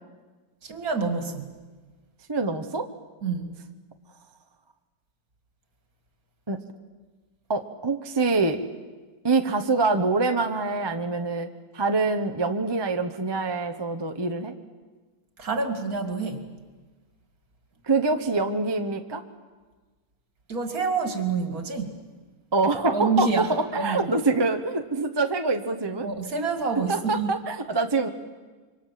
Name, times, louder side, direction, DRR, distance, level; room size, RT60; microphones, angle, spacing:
voice 1, 0.6-1.5 3.2-3.5 15.4-16.5 20.5-22.0 22.9-23.5 23.7-24.1 26.0-27.3, right 4 dB, 60° right, 6 dB, 2.8 m, -27 dB
voice 2, 2.3-2.9 6.5-6.6 7.5-8.6 9.2-11.5 11.7-14.5 17.8-19.2 22.5-26.1 26.9-28.1, right 3 dB, 20° right, 6 dB, 0.9 m, -25 dB
26.5 x 24.0 x 7.5 m, 1.3 s
omnidirectional pair, 1.8 m